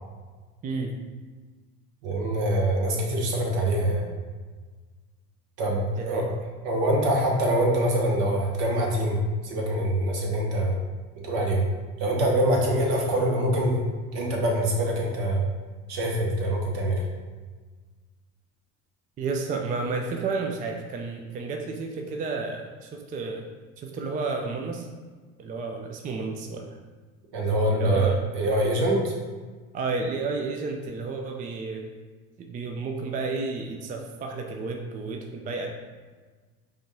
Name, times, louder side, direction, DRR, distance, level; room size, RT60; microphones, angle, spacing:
voice 1, 0.6-1.0 6.0-6.3 19.2-23.5 23.8-24.9 25.4-26.8 27.7-28.2 29.7-31.9 32.4-35.7, right 4 dB, 20° right, 3 dB, 0.4 m, -31 dB
voice 2, 2.0-4.1 5.6-6.3 6.6-9.2 9.4-10.8 11.2-11.6 12.0-13.8 14.1-15.4 15.9-17.1 27.3-29.1, right 1 dB, 60° right, -1 dB, 1.2 m, -24 dB
5.1 x 2.4 x 3.3 m, 1.4 s
hypercardioid pair, 70°, 42 cm